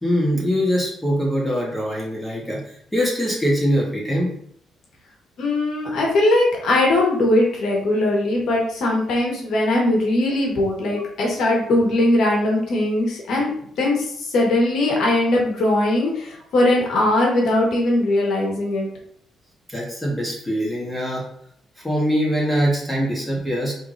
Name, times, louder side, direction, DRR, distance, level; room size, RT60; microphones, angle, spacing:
voice 1, 0.0-2.6 2.9-4.4 19.7-21.2 21.8-23.7, equal, 10° left, -4 dB, 1.4 m, -22 dB
voice 2, 5.4-13.5 13.8-18.9, left 1 dB, 70° left, -1 dB, 1.4 m, -20 dB
4.7 x 3.3 x 2.6 m, 0.65 s
cardioid pair, 90°, 0 cm